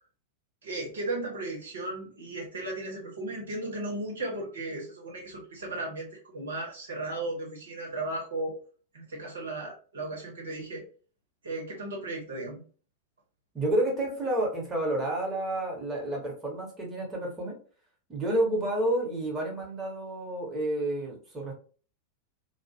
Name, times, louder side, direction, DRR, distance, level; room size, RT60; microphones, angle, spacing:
voice 1, 0.6-8.6 8.9-10.8 11.4-12.6, right 2 dB, 65° right, -2 dB, 1.1 m, -35 dB
voice 2, 13.5-17.6 18.1-21.5, right 1 dB, 20° right, -2 dB, 1.1 m, -30 dB
2.3 x 2.3 x 2.8 m, 0.40 s
figure-of-eight pair, 90°, 0 cm